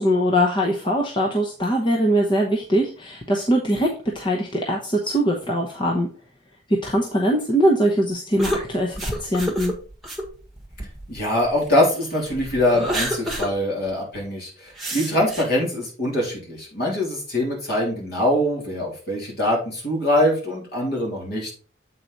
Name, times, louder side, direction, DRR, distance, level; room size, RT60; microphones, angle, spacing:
voice 1, 0.0-6.1 6.7-9.7, equal, 25° left, 0 dB, 0.8 m, -22 dB
sound 1, 8.4-11.7 12.2-13.5 13.9-14.0 14.8-15.4, right 1 dB, ahead, 1.4 m, -29 dB
voice 2, 11.1-21.5, left 1 dB, 55° left, -2 dB, 3.1 m, -23 dB
7.8 x 4.5 x 4.0 m, 0.39 s
head